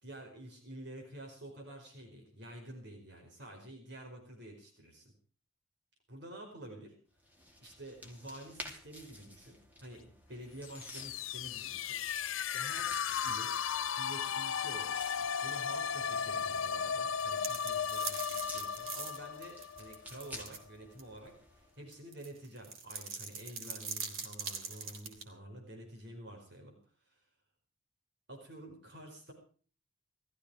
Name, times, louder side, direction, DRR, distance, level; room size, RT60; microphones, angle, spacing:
voice 1, 0.0-5.1 6.1-6.9 7.6-12.9 13.2-13.5 14.0-15.0 15.4-26.7 27.0-27.2 28.3-29.3, right 1 dB, 55° right, 2 dB, 5.0 m, -49 dB
sound 1, 7.2-21.8, left 1 dB, 10° right, 2.8 m, -53 dB
sound 2, 10.7-20.4, left 7 dB, 80° left, 0.6 m, -36 dB
sound 3, 17.1-20.6 21.0-21.1 21.9-25.2, right 5 dB, 85° right, 3.6 m, -42 dB
18.5 x 15.0 x 5.0 m, 0.42 s
head